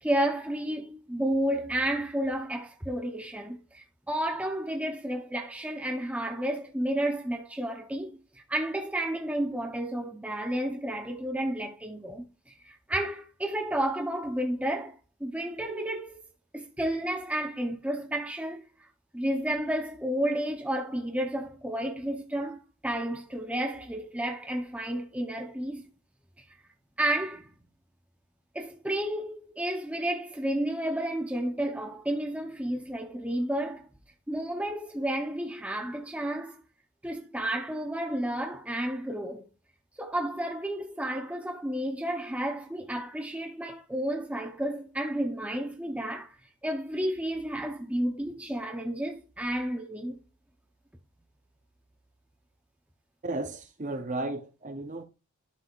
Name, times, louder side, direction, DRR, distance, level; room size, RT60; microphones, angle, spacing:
voice 1, 0.0-16.2 16.5-18.9 19.1-25.9 27.0-27.5 28.5-33.9 34.3-36.6 37.0-39.5 40.0-46.4 46.6-50.2, right 1 dB, 5° right, 0.7 m, -31 dB
voice 2, 53.2-55.0, right 2 dB, 35° right, 0.9 m, -34 dB
11.5 x 4.8 x 2.4 m
head